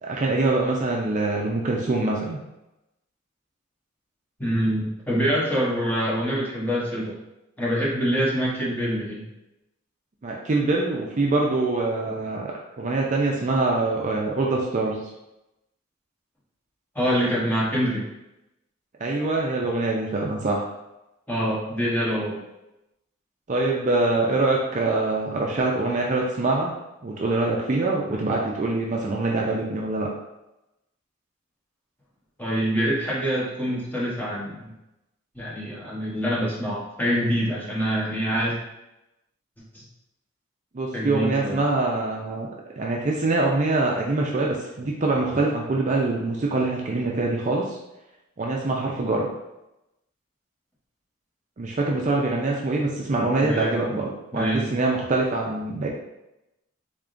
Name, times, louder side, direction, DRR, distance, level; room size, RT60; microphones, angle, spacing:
voice 1, 0.0-2.4 10.2-12.5 12.8-15.0 19.0-20.7 23.5-26.8 27.0-30.1 40.7-42.5 42.8-47.8 48.4-49.3 51.6-55.9, right 2 dB, 35° right, -2 dB, 0.4 m, -24 dB
voice 2, 4.4-7.2 7.6-9.2 16.9-18.0 21.3-22.4 32.4-34.7 35.3-38.6 39.7-39.8 40.9-41.6 53.4-53.8 54.3-54.7, equal, 10° left, -7 dB, 1.0 m, -25 dB
3.6 x 3.5 x 2.5 m, 0.93 s
head